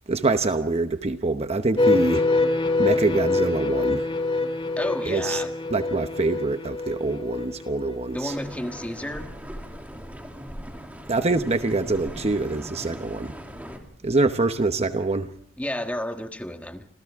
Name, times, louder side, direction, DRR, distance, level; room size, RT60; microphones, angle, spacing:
voice 1, 0.1-2.3 2.8-4.1 5.1-5.4 5.7-8.3 11.1-13.3 14.0-15.3, right 3 dB, 30° right, 0.9 m, -25 dB
sound 1, 1.8-8.4, left 2 dB, 25° left, 2.3 m, -25 dB
voice 2, 4.8-5.5 8.1-9.3 15.6-16.9, left 1 dB, 5° left, 1.5 m, -31 dB
sound 2, 8.3-13.8, equal, 10° right, 2.9 m, -39 dB
29.5 x 26.5 x 3.6 m
head